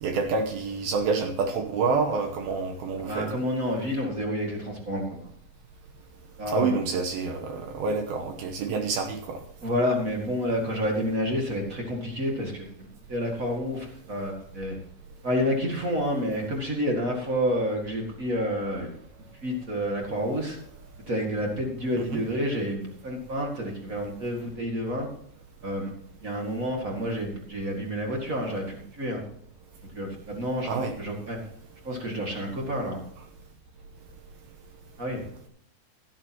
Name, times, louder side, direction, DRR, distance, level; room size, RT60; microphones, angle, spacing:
voice 1, 0.0-3.3 6.5-9.4 22.1-22.2 30.6-31.0, right 4 dB, 75° right, 4 dB, 2.5 m, -27 dB
voice 2, 3.0-5.3 6.4-6.8 9.6-14.7 15.2-18.9 19.4-20.6 21.1-25.1 25.6-25.9 26.2-29.2 29.9-31.4 31.8-33.0 35.0-35.2, equal, 40° right, 0 dB, 1.1 m, -29 dB
16.0 x 10.0 x 2.9 m, 0.67 s
omnidirectional pair, 5.0 m